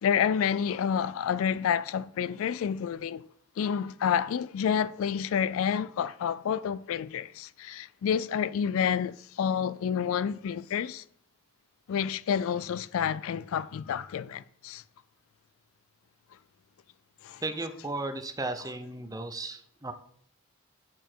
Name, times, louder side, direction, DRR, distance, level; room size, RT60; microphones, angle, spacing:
voice 1, 0.0-3.3 3.6-11.0 11.9-14.8 17.2-17.4, left 8 dB, 65° left, 0.3 m, -29 dB
voice 2, 17.4-19.9, right 2 dB, 15° right, 0.6 m, -35 dB
7.9 x 6.6 x 4.5 m
head